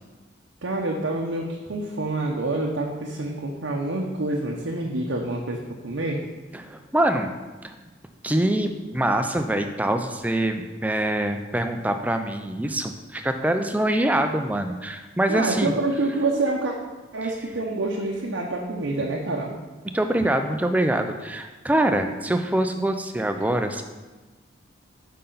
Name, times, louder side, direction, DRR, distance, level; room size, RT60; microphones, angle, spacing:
voice 1, 0.6-6.2 15.3-16.7 17.1-19.5, right 2 dB, 75° right, -1 dB, 0.8 m, -27 dB
voice 2, 6.5-7.3 7.6-7.8 8.2-15.7 19.9-23.8, right 1 dB, 10° right, 6 dB, 0.4 m, -24 dB
8.3 x 5.5 x 3.9 m, 1.2 s
head